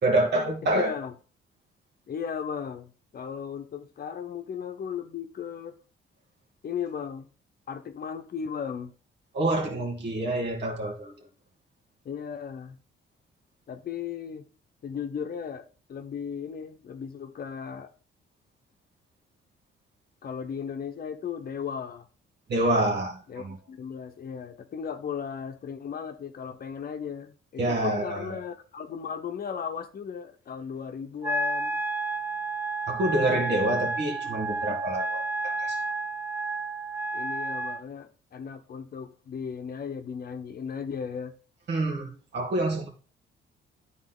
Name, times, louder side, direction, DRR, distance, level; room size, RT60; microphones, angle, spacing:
voice 1, 0.0-0.9 9.3-11.1 22.5-23.6 27.6-28.4 32.9-35.8 41.7-42.9, right 1 dB, 60° right, 2.1 m, -27 dB
voice 2, 0.6-1.1 2.1-5.8 6.6-7.3 7.7-8.9 12.0-12.8 13.7-14.5 14.8-17.9 20.2-22.1 23.3-31.8 37.1-41.4, left 7 dB, 50° left, 0.8 m, -36 dB
Wind instrument woodwind instrument, 31.2-37.8, right 2 dB, 10° right, 0.5 m, -31 dB
9.8 x 4.0 x 3.8 m
cardioid pair, 90°, 20 cm